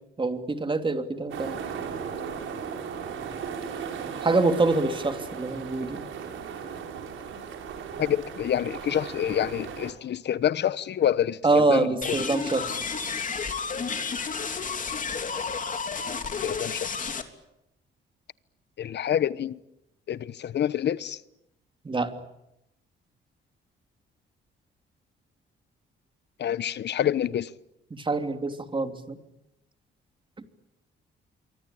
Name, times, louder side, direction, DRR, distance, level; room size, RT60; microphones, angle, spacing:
voice 1, 0.2-1.6 4.2-6.0 11.4-12.8 21.8-22.1 27.9-29.2, right 3 dB, 25° right, 3.0 m, -25 dB
sound 1, 1.3-9.9, right 6 dB, 80° right, 5.7 m, -36 dB
voice 2, 8.0-12.2 16.4-17.1 18.8-19.6 20.1-21.2 26.4-27.5, left 10 dB, 60° left, 1.1 m, -27 dB
sound 2, 12.0-17.2, left 5 dB, 40° left, 3.2 m, -31 dB
27.0 x 24.5 x 8.9 m
cardioid pair, 90°, 20 cm